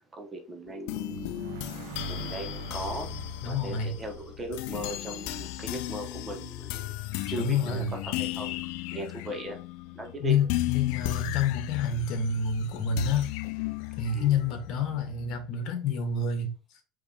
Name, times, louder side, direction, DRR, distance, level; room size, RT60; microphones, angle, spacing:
voice 1, 0.2-1.3 2.0-3.1 3.5-6.9 7.3-8.5 8.9-9.6 10.0-10.3 14.1-14.3, right 1 dB, 20° right, 0.9 m, -38 dB
sound 1, 0.7-15.5, left 16 dB, 70° left, 0.3 m, -35 dB
sound 2, 1.1-5.7, right 8 dB, 80° right, 0.6 m, -44 dB
voice 2, 3.4-3.9 7.3-7.9 10.2-13.3 14.0-16.5, left 5 dB, 50° left, 1.3 m, -28 dB
4.8 x 3.2 x 3.4 m
supercardioid pair, 130°, 0 cm